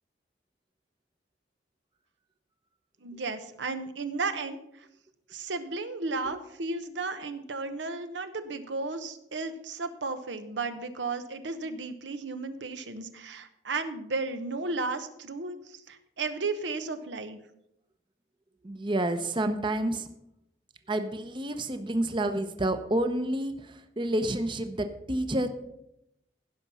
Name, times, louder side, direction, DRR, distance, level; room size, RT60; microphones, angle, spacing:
voice 1, 3.0-4.9 5.3-17.4, right 3 dB, 85° right, 10 dB, 0.9 m, -34 dB
voice 2, 18.6-20.1 20.9-25.5, right 1 dB, 25° right, 9 dB, 0.7 m, -29 dB
15.5 x 6.0 x 5.5 m, 0.81 s
head